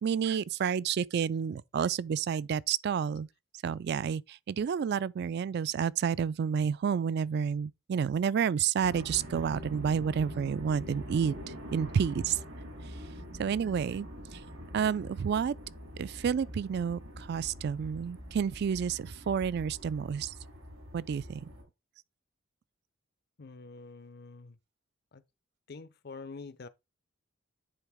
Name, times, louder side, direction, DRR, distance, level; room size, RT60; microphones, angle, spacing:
voice 1, 0.0-3.3 3.6-12.4 13.4-14.1 14.3-14.4 14.7-15.5 16.0-20.3 20.9-21.4, right 7 dB, 55° right, 0.3 m, -30 dB
sound 1, 8.8-21.6, equal, 85° right, 3.0 m, -44 dB
voice 2, 23.4-24.6 25.1-25.2 25.7-26.7, left 4 dB, 50° left, 0.6 m, -46 dB
10.0 x 4.1 x 3.5 m
head